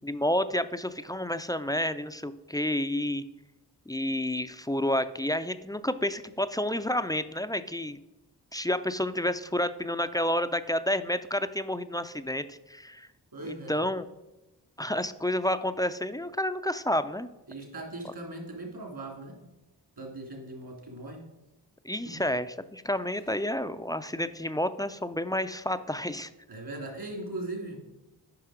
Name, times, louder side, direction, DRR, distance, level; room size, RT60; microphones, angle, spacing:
voice 1, 0.0-3.2 3.9-8.0 8.5-13.1 13.7-14.0 14.8-17.3 21.8-26.3, left 1 dB, 10° left, 11 dB, 0.4 m, -30 dB
voice 2, 13.3-13.8 17.5-19.4 20.0-21.2 22.0-22.2 23.2-23.4 26.5-27.8, right 2 dB, 65° right, 0 dB, 3.0 m, -39 dB
9.4 x 5.6 x 4.9 m, 1.0 s
cardioid pair, 45°, 42 cm